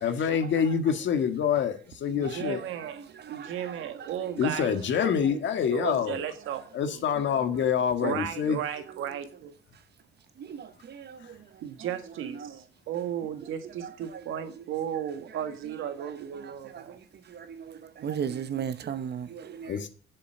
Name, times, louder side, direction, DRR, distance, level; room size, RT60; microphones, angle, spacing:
voice 1, 0.0-2.6 4.4-6.2 6.7-8.6 19.7-19.9, left 7 dB, 70° left, 1.7 m, -26 dB
voice 2, 2.1-4.8 5.3-5.4 5.7-7.0 8.0-9.5 11.6-17.0, right 10 dB, 85° right, 1.6 m, -35 dB
voice 3, 18.0-19.7, right 8 dB, 55° right, 1.1 m, -34 dB
7.7 x 7.6 x 7.6 m
cardioid pair, 90°, 20 cm